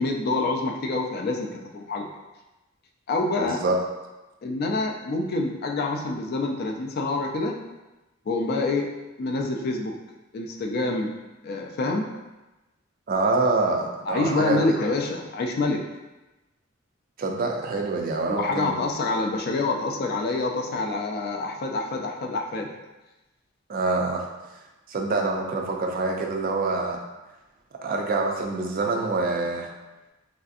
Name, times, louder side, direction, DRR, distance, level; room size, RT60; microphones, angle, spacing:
voice 1, 0.0-2.1 3.1-3.6 4.4-7.6 8.3-8.9 9.2-9.9 10.3-11.1 11.4-12.1 14.1-15.8 18.3-22.7, left 3 dB, 45° left, 2 dB, 0.3 m, -26 dB
voice 2, 3.4-3.8 13.1-14.6 17.2-18.8 23.7-24.2 24.9-27.0 27.8-29.7, right 3 dB, 40° right, 1 dB, 0.3 m, -26 dB
3.2 x 2.6 x 2.4 m, 1.1 s
head